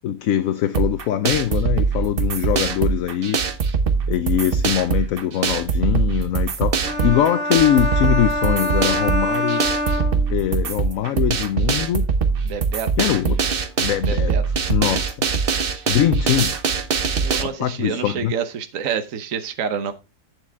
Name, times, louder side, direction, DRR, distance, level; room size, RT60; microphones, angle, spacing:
voice 1, 0.0-3.4 4.1-9.6 10.0-12.1 13.0-13.4 13.8-15.3 15.9-16.5 17.4-18.3, left 11 dB, 70° left, 0.9 m, -22 dB
sound 1, 0.7-17.4, right 5 dB, 45° right, 0.9 m, -22 dB
sound 2, 6.8-10.7, left 1 dB, 20° right, 5.9 m, -25 dB
voice 2, 12.4-12.9 14.1-14.4 17.2-19.9, right 7 dB, 60° right, 1.3 m, -27 dB
9.5 x 6.9 x 3.5 m
omnidirectional pair, 1.7 m